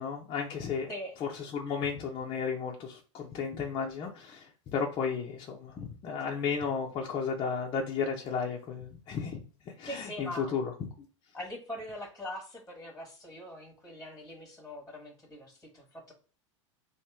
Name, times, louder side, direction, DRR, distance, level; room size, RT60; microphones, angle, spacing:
voice 1, 0.0-0.9 1.2-9.4 9.8-10.7, left 6 dB, 30° left, 0.7 m, -33 dB
voice 2, 9.9-10.5 11.3-16.1, left 1 dB, 5° left, 1.2 m, -42 dB
3.0 x 2.5 x 3.6 m
hypercardioid pair, 95°, 16 cm